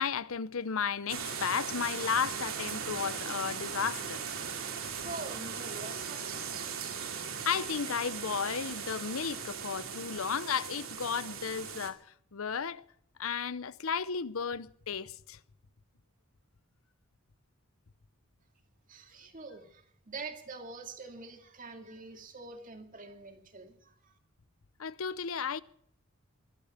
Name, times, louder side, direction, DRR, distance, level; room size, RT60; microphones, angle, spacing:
voice 1, 0.0-4.2 7.3-12.0 12.3-12.8 13.2-15.4 24.8-25.6, left 6 dB, 80° left, 0.7 m, -34 dB
sound 1, 1.1-11.9, right 6 dB, 75° right, 2.5 m, -38 dB
voice 2, 5.0-6.6 18.9-24.1, right 3 dB, 40° right, 2.2 m, -45 dB
20.0 x 12.0 x 5.9 m
head